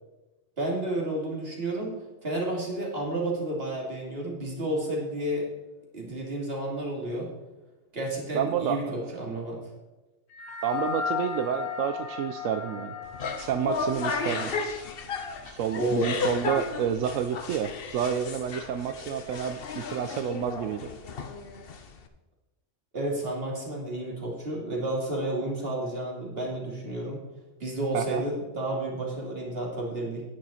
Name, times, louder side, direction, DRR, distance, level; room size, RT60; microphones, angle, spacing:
voice 1, 0.6-2.0 2.2-5.5 5.9-7.3 7.9-9.6 15.8-16.0 22.9-27.2 27.6-30.2, right 1 dB, 50° right, -2 dB, 2.8 m, -31 dB
voice 2, 8.3-9.4 10.6-12.9 13.4-14.5 15.4-20.9 27.9-28.2, right 8 dB, 85° right, 9 dB, 1.0 m, -29 dB
sound 1, 10.3-15.0, left 7 dB, 85° left, 2.5 m, -36 dB
sound 2, 13.0-22.1, left 4 dB, 50° left, 1.0 m, -34 dB
10.0 x 9.9 x 4.2 m, 1.1 s
omnidirectional pair, 1.3 m